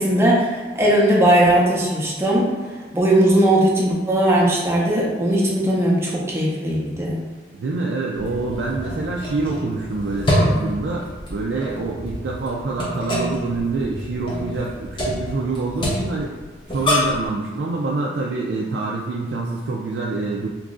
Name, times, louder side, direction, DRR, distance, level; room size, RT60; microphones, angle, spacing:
voice 1, 0.0-2.5 2.9-7.2, right 1 dB, 15° right, -4 dB, 0.5 m, -18 dB
voice 2, 7.5-11.0 11.3-16.3 16.7-20.5, right 3 dB, 75° right, -3 dB, 0.3 m, -26 dB
sound 1, 8.1-17.3, left 1 dB, 25° left, 0.7 m, -26 dB
3.0 x 2.4 x 3.7 m, 1.3 s
head